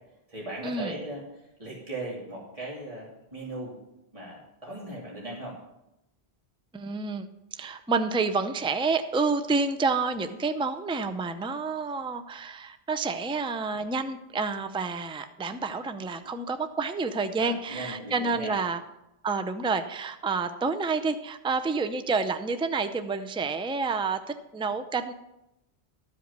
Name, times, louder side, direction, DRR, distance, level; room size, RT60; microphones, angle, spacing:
voice 1, 0.3-1.3 1.6-3.8 4.1-5.6 17.3-18.6, right 2 dB, 35° right, -5 dB, 2.9 m, -38 dB
voice 2, 6.7-7.3 7.5-18.8 19.2-25.1, right 4 dB, 5° right, 9 dB, 0.4 m, -29 dB
13.5 x 5.2 x 8.1 m, 0.90 s
omnidirectional pair, 1.1 m